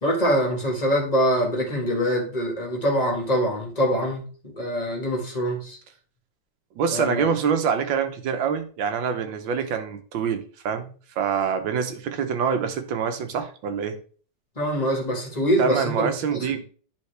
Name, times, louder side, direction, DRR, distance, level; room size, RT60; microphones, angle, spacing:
voice 1, 0.0-5.8 6.9-7.3 14.6-16.1 16.3-16.5, equal, 25° left, 1.5 m, -24 dB
voice 2, 6.8-10.9 11.2-14.0 15.6-16.7, right 6 dB, 85° right, 1.7 m, -25 dB
10.0 x 3.7 x 3.3 m
omnidirectional pair, 2.0 m